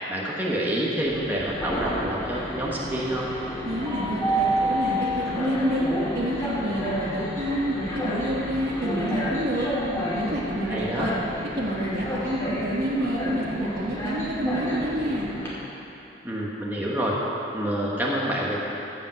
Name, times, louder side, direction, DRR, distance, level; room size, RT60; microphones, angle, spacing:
voice 1, 0.1-3.3 10.7-11.1 16.2-17.2 17.5-18.6, right 1 dB, 10° right, -5 dB, 1.2 m, -27 dB
Train, 1.1-15.5, equal, 15° left, 2.2 m, -30 dB
voice 2, 3.6-5.8 6.1-9.7 10.2-11.1 11.6-15.3, equal, 55° right, -5 dB, 1.4 m, -28 dB
15.0 x 5.1 x 7.6 m, 3.0 s
head